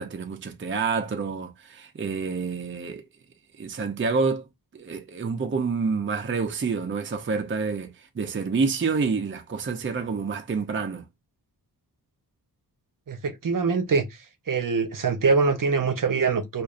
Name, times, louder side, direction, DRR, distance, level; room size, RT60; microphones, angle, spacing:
voice 1, 0.0-3.0 3.6-4.4 4.7-11.0, right 4 dB, 30° right, 0.5 m, -28 dB
voice 2, 13.1-14.1 14.5-16.6, right 4 dB, 55° right, 0.8 m, -23 dB
5.0 x 2.5 x 2.4 m
wide cardioid pair, 85°, 39 cm